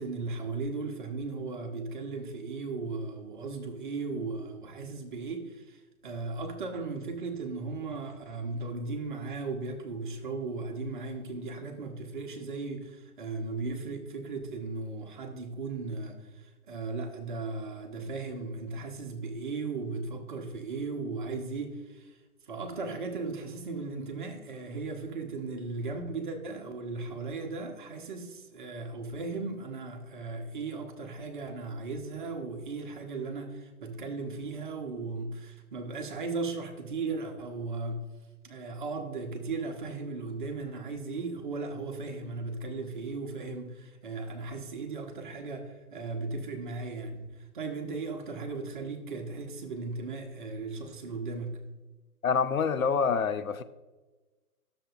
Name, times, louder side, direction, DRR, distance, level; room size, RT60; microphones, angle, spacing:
voice 1, 0.0-22.2 22.5-38.0 38.4-51.6, right 3 dB, 35° right, 0.9 m, -36 dB
voice 2, 52.2-53.6, left 6 dB, 65° left, 0.5 m, -26 dB
10.0 x 6.9 x 2.4 m
figure-of-eight pair, 140°, 46 cm